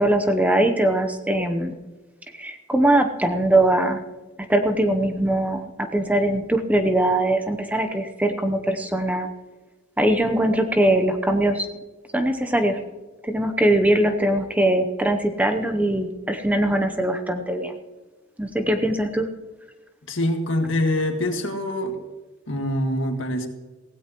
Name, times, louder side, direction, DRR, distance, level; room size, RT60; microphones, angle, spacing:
voice 1, 0.0-1.8 2.4-4.0 4.5-9.3 10.0-11.7 12.1-12.8 13.2-17.8 18.4-19.3, right 1 dB, 10° right, 6 dB, 0.8 m, -21 dB
voice 2, 20.1-22.0 22.5-23.5, left 1 dB, 70° left, 4 dB, 1.9 m, -24 dB
16.5 x 16.0 x 3.0 m, 1.2 s
head